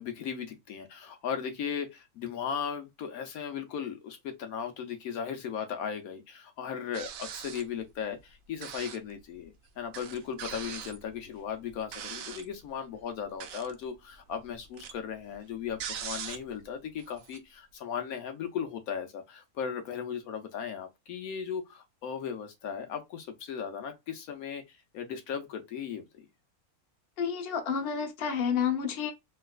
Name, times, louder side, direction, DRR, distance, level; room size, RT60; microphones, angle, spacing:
voice 1, 0.0-26.3, left 7 dB, 75° left, 1.1 m, -37 dB
sound 1, 6.9-7.8 8.6-9.1 9.4-9.5 9.9-12.5 13.2-13.9 14.1-16.6 17.0-17.4, right 8 dB, 70° right, 1.0 m, -41 dB
voice 2, 27.2-29.1, left 7 dB, 50° left, 0.9 m, -30 dB
3.3 x 2.8 x 2.3 m
omnidirectional pair, 1.6 m